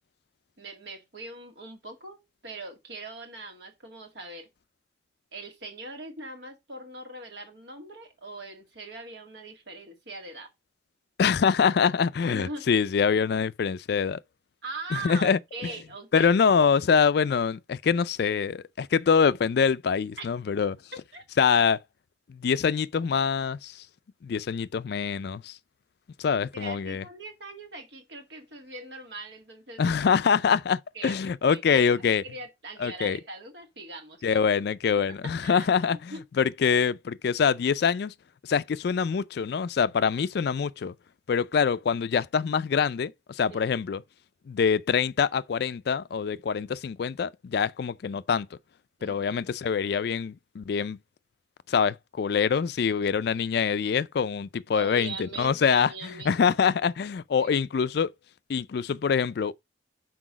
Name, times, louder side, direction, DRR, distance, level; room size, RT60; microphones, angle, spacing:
voice 1, 0.6-4.5 5.3-10.5 12.3-12.6 14.6-16.3 20.2-20.3 21.1-21.2 26.5-29.9 30.9-31.2 31.5-34.2 35.0-35.7 36.1-36.2 43.5-43.7 49.0-49.4 54.7-56.4 57.4-57.5 57.8-57.9, right 3 dB, 60° right, 1.9 m, -41 dB
voice 2, 11.2-14.2 14.9-15.4 16.1-20.8 21.4-21.8 22.3-23.8 24.2-25.6 26.2-27.0 29.8-32.2 32.8-33.2 34.2-38.1 38.4-40.9 41.3-44.0 44.5-48.5 49.0-51.0 51.7-55.9 56.3-58.1 58.5-59.5, left 6 dB, 55° left, 0.3 m, -25 dB
6.1 x 4.7 x 4.8 m
head